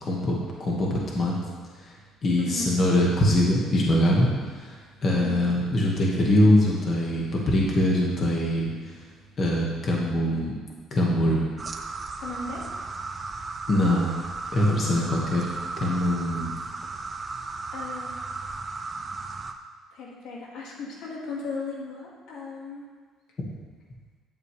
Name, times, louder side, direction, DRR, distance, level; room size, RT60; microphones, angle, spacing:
voice 1, 0.0-1.3 2.2-4.3 4.5-9.0 9.4-10.5 10.9-11.4 13.7-14.1 14.5-15.5 15.8-16.5, left 1 dB, 40° left, -3 dB, 1.6 m, -23 dB
voice 2, 2.4-2.7 5.1-5.5 12.2-12.8 17.7-18.2 19.9-22.8, left 4 dB, 70° left, -2 dB, 1.9 m, -36 dB
sound 1, 11.6-19.5, right 3 dB, 25° right, 0.6 m, -35 dB
9.5 x 8.6 x 3.3 m, 1.5 s
cardioid pair, 115°, 0 cm